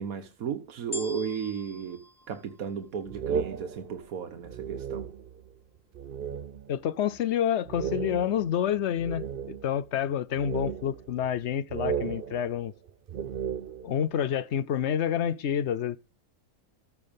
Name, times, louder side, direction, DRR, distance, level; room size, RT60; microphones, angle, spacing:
voice 1, 0.0-5.1, right 7 dB, 80° right, 1.5 m, -35 dB
sound 1, 0.9-3.3 4.0-4.1, left 3 dB, 15° left, 1.3 m, -43 dB
sound 2, 3.1-5.5 5.9-6.8 7.1-7.2 7.7-9.9 10.4-11.4 11.7-14.1, right 7 dB, 50° right, 0.8 m, -35 dB
voice 2, 6.7-12.7 13.8-16.0, left 9 dB, 60° left, 0.8 m, -28 dB
14.0 x 5.9 x 5.3 m
omnidirectional pair, 1.5 m